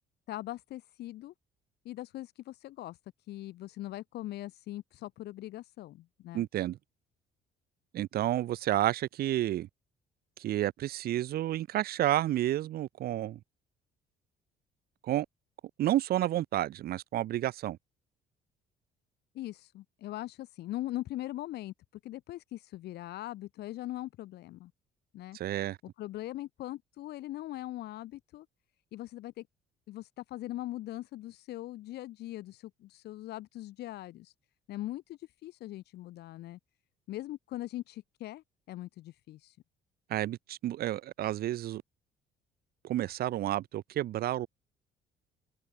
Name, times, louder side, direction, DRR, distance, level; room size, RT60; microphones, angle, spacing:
voice 1, 0.3-1.3 1.8-3.0 3.3-6.5 19.3-21.7 22.0-24.7 25.1-25.4 26.0-28.5 28.9-29.5 29.9-34.3 34.7-36.6 37.1-39.6, left 15 dB, 75° left, 5.6 m, -41 dB
voice 2, 6.3-6.8 7.9-9.7 10.4-13.4 15.0-15.3 15.8-17.8 25.3-25.8 40.1-41.8 42.8-44.5, right 13 dB, 65° right, 1.4 m, -30 dB
open air
cardioid pair, 110°, 17 cm